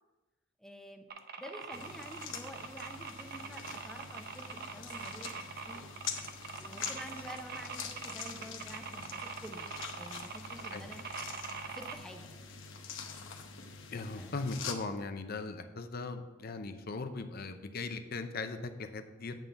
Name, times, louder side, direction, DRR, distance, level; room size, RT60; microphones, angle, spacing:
voice 1, 0.6-1.1 1.4-5.8 6.6-11.0 11.7-12.6 14.2-14.4, equal, 5° left, 3 dB, 0.7 m, -49 dB
sound 1, 1.1-11.9, right 5 dB, 55° right, 0.7 m, -43 dB
sound 2, 1.7-14.7, left 6 dB, 80° left, 0.9 m, -45 dB
voice 2, 13.9-19.3, left 3 dB, 55° left, 8 dB, 0.7 m, -39 dB
9.1 x 3.8 x 6.7 m, 1.2 s
head